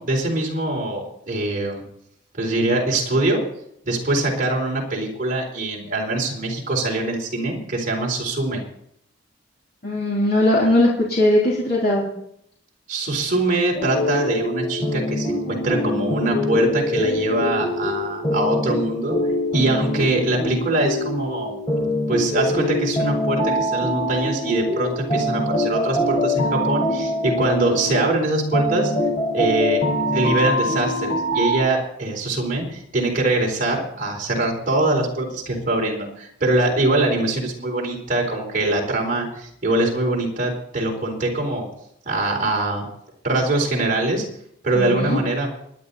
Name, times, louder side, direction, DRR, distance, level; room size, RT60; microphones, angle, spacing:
voice 1, 0.0-1.8 2.3-3.4 3.8-8.6 12.9-19.2 19.5-21.5 22.1-28.9 29.3-41.7 42.0-42.8 43.2-44.2 44.6-45.5, right 2 dB, 40° right, -1 dB, 4.2 m, -23 dB
voice 2, 9.8-12.0 44.7-45.2, left 1 dB, 50° left, -5 dB, 3.4 m, -19 dB
sound 1, 13.7-31.6, left 1 dB, 25° left, 4.8 m, -24 dB
24.5 x 10.0 x 4.2 m, 0.72 s
head